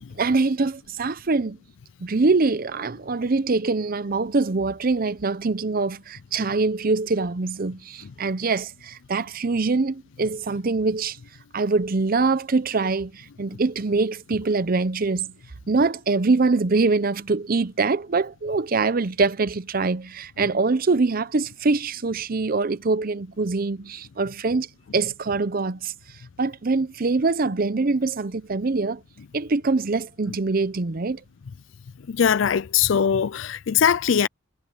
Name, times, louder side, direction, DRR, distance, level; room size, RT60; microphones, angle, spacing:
voice 1, 0.2-1.6 2.0-11.2 11.5-15.3 15.7-24.7 24.9-25.9 26.4-29.0 29.3-31.2, right 3 dB, 50° right, 0.7 m, -24 dB
voice 2, 32.1-34.3, left 8 dB, 80° left, 0.4 m, -21 dB
head